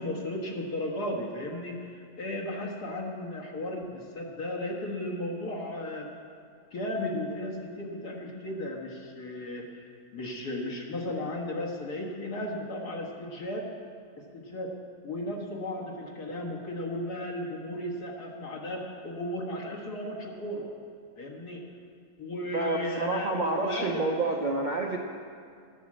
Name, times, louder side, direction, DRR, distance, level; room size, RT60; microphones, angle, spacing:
voice 1, 0.0-6.1 6.7-13.7 14.2-14.7 15.0-20.7 21.2-21.6 22.2-24.1, left 1 dB, 70° left, -1 dB, 2.2 m, -35 dB
voice 2, 22.5-25.0, right 2 dB, 45° right, 0 dB, 0.6 m, -28 dB
11.5 x 8.3 x 7.5 m, 2.3 s
omnidirectional pair, 1.8 m